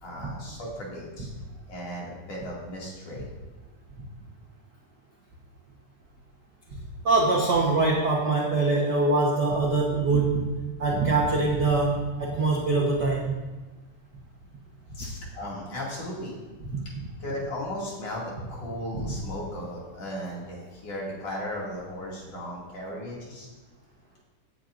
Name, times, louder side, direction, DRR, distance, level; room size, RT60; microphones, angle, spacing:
voice 1, 0.0-1.3 1.7-3.2 14.9-16.3 17.2-23.5, left 1 dB, 55° left, -4 dB, 3.4 m, -36 dB
voice 2, 7.0-10.5 10.8-13.4 18.9-19.1, right 3 dB, 70° right, -2 dB, 1.0 m, -23 dB
16.5 x 8.8 x 2.6 m, 1.2 s
omnidirectional pair, 3.7 m